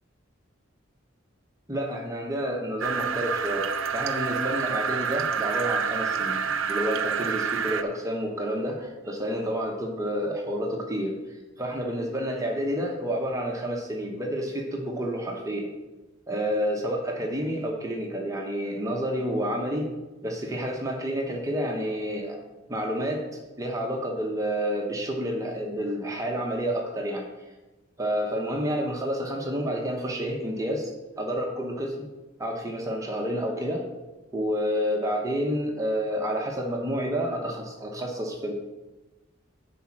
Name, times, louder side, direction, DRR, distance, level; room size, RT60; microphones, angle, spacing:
voice 1, 1.7-6.4 6.7-11.2 11.6-15.7 16.3-19.9 20.2-22.4 22.7-27.3 28.0-32.1 32.4-33.8 34.3-38.5, equal, 15° right, 1 dB, 1.0 m, -29 dB
sound 1, 2.8-7.8, right 6 dB, 90° right, 0.6 m, -28 dB
10.0 x 4.3 x 6.0 m, 1.1 s
head